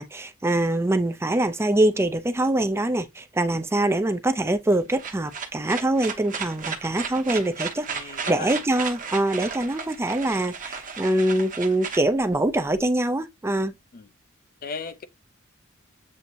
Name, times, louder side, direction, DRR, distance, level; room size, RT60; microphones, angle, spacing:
voice 1, 0.0-13.7, right 1 dB, 10° right, 0.4 m, -24 dB
sound 1, 4.7-12.8, right 6 dB, 40° right, 1.0 m, -34 dB
voice 2, 7.9-8.6 13.9-14.1 14.6-15.0, left 4 dB, 45° left, 0.5 m, -36 dB
7.6 x 2.7 x 2.5 m
head